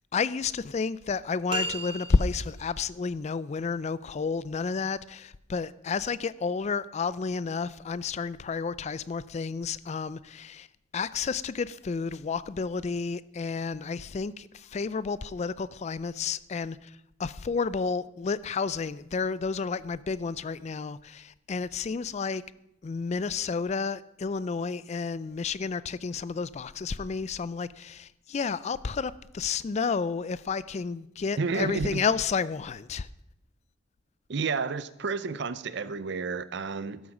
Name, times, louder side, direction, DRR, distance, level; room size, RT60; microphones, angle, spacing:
voice 1, 0.1-10.7 10.9-22.4 22.8-33.1, left 5 dB, 35° left, 18 dB, 0.3 m, -31 dB
sound 1, 1.5-2.6, right 2 dB, 25° right, 1.4 m, -34 dB
voice 2, 31.4-32.0 34.3-37.0, right 4 dB, 60° right, 15 dB, 0.6 m, -31 dB
12.5 x 8.0 x 6.0 m, 0.84 s
head